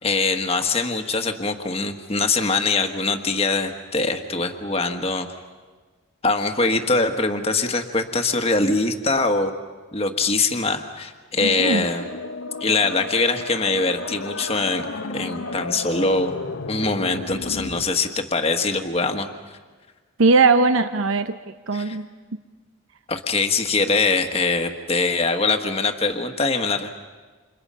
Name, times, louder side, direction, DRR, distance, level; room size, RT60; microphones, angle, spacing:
voice 1, 0.0-5.3 6.2-9.5 9.9-12.0 12.6-16.3 16.7-19.3 21.7-22.0 23.1-26.9, left 3 dB, 30° left, 6 dB, 1.5 m, -23 dB
sound 1, 11.3-17.8, left 3 dB, 70° left, 1.0 m, -33 dB
voice 2, 11.4-11.8 20.2-21.4 21.7-22.1, right 3 dB, 70° right, 9 dB, 0.8 m, -19 dB
30.0 x 27.5 x 5.6 m, 1.4 s
head